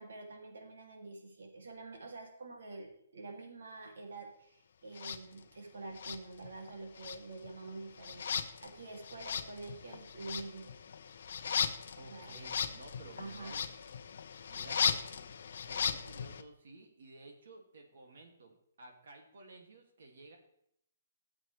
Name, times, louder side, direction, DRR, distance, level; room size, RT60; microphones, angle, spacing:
voice 1, 0.0-10.7 12.1-12.4 13.2-13.6 14.9-15.1, right 3 dB, 80° right, 1 dB, 2.7 m, -47 dB
sound 1, 4.9-5.2 5.9-6.7 7.0-16.4, left 7 dB, 55° left, 0.7 m, -37 dB
voice 2, 11.9-13.6 14.5-15.3 15.6-20.4, right 3 dB, 65° right, 2 dB, 2.3 m, -54 dB
14.0 x 7.4 x 3.3 m, 0.72 s
hypercardioid pair, 170°, 0 cm